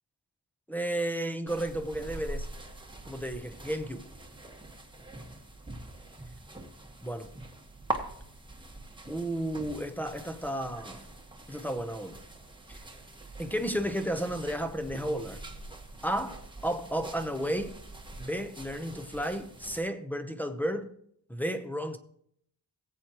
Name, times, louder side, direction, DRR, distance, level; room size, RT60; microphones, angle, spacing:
voice 1, 0.7-2.5 3.1-4.1 7.0-7.3 9.1-11.0 11.5-12.2 12.7-12.8 13.4-15.4 16.0-17.8 18.2-20.9 21.3-22.0, right 1 dB, 5° left, 0.7 m, -33 dB
sound 1, 1.5-19.8, right 2 dB, 10° right, 1.2 m, -43 dB
18.0 x 8.1 x 2.9 m
wide cardioid pair, 135°, 41 cm